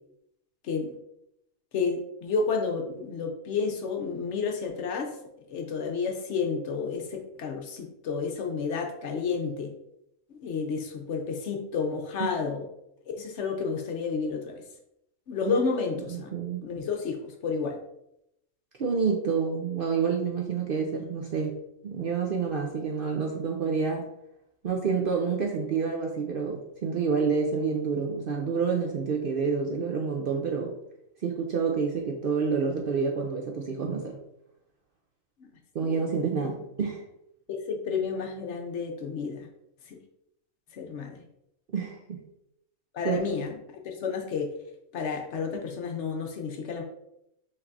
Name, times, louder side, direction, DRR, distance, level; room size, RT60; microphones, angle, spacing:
voice 1, 0.6-1.0 1.7-5.1 5.5-9.7 10.4-12.6 13.1-14.6 15.3-16.3 16.6-17.8 35.8-36.0 36.4-36.5 37.5-39.5 39.9-40.0 40.7-41.2 42.9-44.5 44.9-46.8, left 5 dB, 65° left, 3 dB, 0.9 m, -31 dB
voice 2, 16.1-16.6 18.8-24.0 24.6-30.7 31.2-34.2 35.7-37.0 41.7-42.2 43.0-43.2, right 5 dB, 60° right, 1 dB, 0.6 m, -28 dB
5.7 x 3.3 x 2.6 m, 0.81 s
omnidirectional pair, 1.4 m